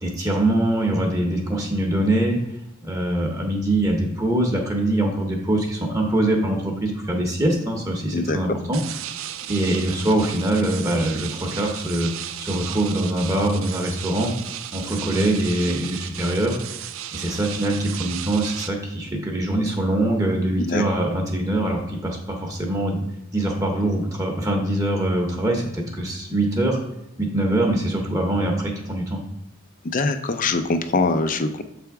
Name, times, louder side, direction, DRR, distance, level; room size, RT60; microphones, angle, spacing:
voice 1, 0.0-2.4 2.8-8.8 9.5-14.3 14.7-16.6 17.1-23.0 23.3-26.8 27.2-29.2, right 1 dB, 15° right, 1 dB, 0.8 m, -23 dB
voice 2, 8.1-8.6 20.7-20.8 29.9-31.6, left 3 dB, 40° left, 8 dB, 0.5 m, -23 dB
sound 1, 8.7-18.7, right 11 dB, 80° right, 0.4 m, -35 dB
6.9 x 3.4 x 4.7 m, 0.88 s
head